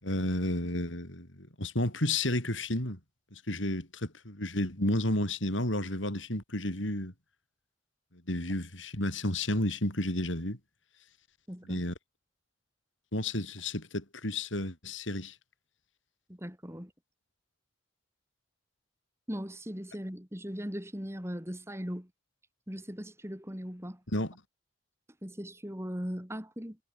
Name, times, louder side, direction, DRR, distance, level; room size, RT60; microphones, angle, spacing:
voice 1, 0.0-3.0 3.3-7.1 8.3-10.6 11.7-11.9 13.1-15.3 24.1-24.3, left 1 dB, 90° left, 7.0 m, -31 dB
voice 2, 11.5-11.8 16.3-16.9 19.3-22.1 22.7-24.0 25.2-26.8, equal, 15° right, 4.9 m, -39 dB
head